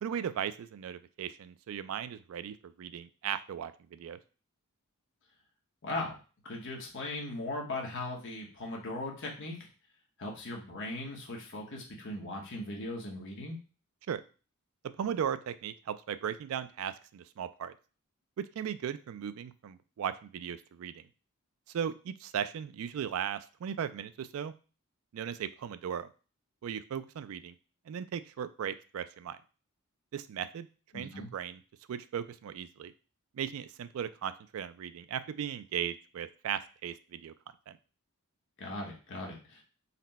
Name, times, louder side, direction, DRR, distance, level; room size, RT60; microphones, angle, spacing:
voice 1, 0.0-4.2 14.1-14.2 15.0-17.7 18.4-21.0 21.7-24.5 25.1-26.1 26.6-27.5 27.9-29.4 30.1-30.7 30.9-31.6 31.9-32.9 33.3-37.3 37.7-37.8, right 8 dB, 65° right, 13 dB, 0.3 m, -37 dB
voice 2, 5.8-6.2 6.4-9.6 10.2-13.6 30.9-31.3 38.6-39.6, left 2 dB, 60° left, -1 dB, 1.0 m, -38 dB
4.1 x 2.1 x 4.0 m, 0.35 s
head